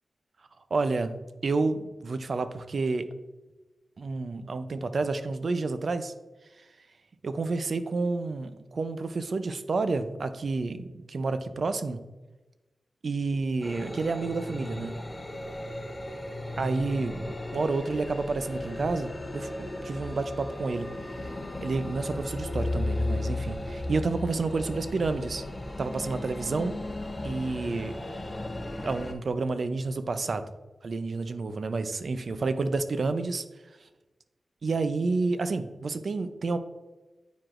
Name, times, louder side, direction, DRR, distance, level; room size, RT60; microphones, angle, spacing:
voice 1, 0.7-1.2 1.4-3.1 4.0-6.1 7.2-12.0 13.0-14.9 16.6-20.9 21.6-25.4 25.8-26.8 27.2-27.9 28.8-30.4 30.8-33.4 34.6-36.6, right 3 dB, 65° right, 10 dB, 0.5 m, -29 dB
sound 1, 13.6-29.1, left 2 dB, 25° left, 0.7 m, -35 dB
9.1 x 4.8 x 2.5 m, 1.1 s
wide cardioid pair, 80°, 0 cm